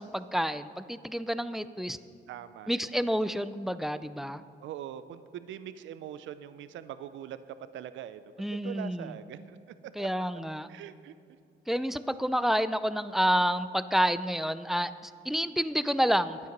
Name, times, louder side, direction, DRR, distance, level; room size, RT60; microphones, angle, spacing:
voice 1, 0.0-2.0 2.7-4.4 8.4-9.2 10.0-10.7 11.7-16.4, equal, ahead, 13 dB, 0.4 m, -29 dB
voice 2, 2.3-2.7 4.6-7.4 7.7-8.2 8.5-10.2 10.7-11.1, right 10 dB, 75° right, 13 dB, 0.5 m, -42 dB
11.0 x 9.2 x 5.2 m, 2.2 s
cardioid pair, 90°, 20 cm